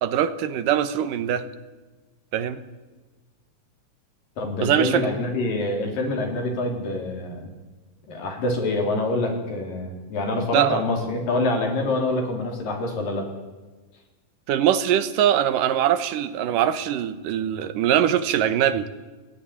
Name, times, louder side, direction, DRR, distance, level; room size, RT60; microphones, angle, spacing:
voice 1, 0.0-1.4 2.3-2.6 4.6-5.1 10.5-10.8 14.5-18.9, right 10 dB, 80° right, 12 dB, 2.6 m, -22 dB
voice 2, 4.4-7.5 8.1-13.3, left 2 dB, 80° left, 2 dB, 5.5 m, -26 dB
30.0 x 10.0 x 9.9 m, 1.2 s
omnidirectional pair, 3.9 m